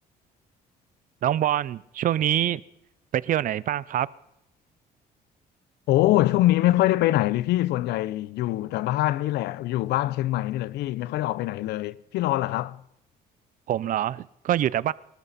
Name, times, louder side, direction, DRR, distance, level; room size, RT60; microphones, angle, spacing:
voice 1, 1.2-2.6 3.1-4.1 13.7-14.9, right 12 dB, 55° right, 0.6 m, -25 dB
voice 2, 5.9-12.8, left 15 dB, 80° left, 0.7 m, -24 dB
23.5 x 13.5 x 4.2 m
cardioid pair, 110°, 17 cm